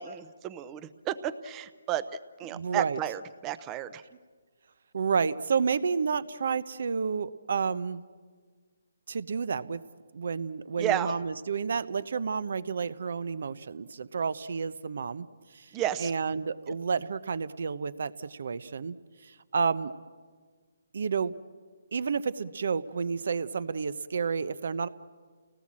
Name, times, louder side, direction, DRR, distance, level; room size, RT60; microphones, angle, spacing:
voice 1, 0.0-2.0 2.4-4.0 10.8-11.1 15.7-16.1, right 11 dB, 15° right, 14 dB, 0.7 m, -32 dB
voice 2, 2.5-3.0 4.9-8.0 9.1-9.8 10.1-15.3 15.5-15.7 16.0-19.0 19.2-19.9 20.9-21.3 21.9-24.9, right 5 dB, 60° right, 16 dB, 0.9 m, -30 dB
29.5 x 18.5 x 7.6 m, 1.5 s
hypercardioid pair, 165°, 0 cm